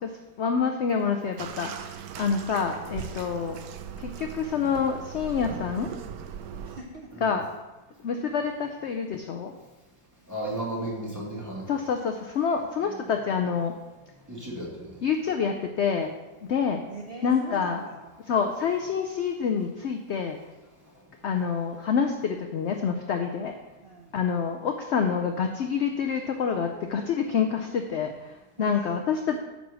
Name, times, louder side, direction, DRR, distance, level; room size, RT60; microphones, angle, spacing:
voice 1, 0.4-1.7 2.2-3.6 4.0-5.9 7.2-7.4 8.0-9.5 11.7-13.7 15.0-16.1 16.5-16.8 17.2-17.8 18.3-20.4 21.2-23.6 24.1-29.4, left 6 dB, 65° left, 4 dB, 0.7 m, -27 dB
Bathtub (filling or washing), 1.4-6.8, right 7 dB, 70° right, 1.1 m, -39 dB
voice 2, 6.6-7.2 8.0-8.1 16.9-18.3 23.8-24.2 28.6-29.4, right 3 dB, 45° right, -1 dB, 0.9 m, -43 dB
voice 3, 10.3-11.7 12.8-12.9 14.3-15.0, right 1 dB, 10° right, -5 dB, 2.2 m, -34 dB
9.3 x 4.1 x 6.2 m, 1.1 s
omnidirectional pair, 1.7 m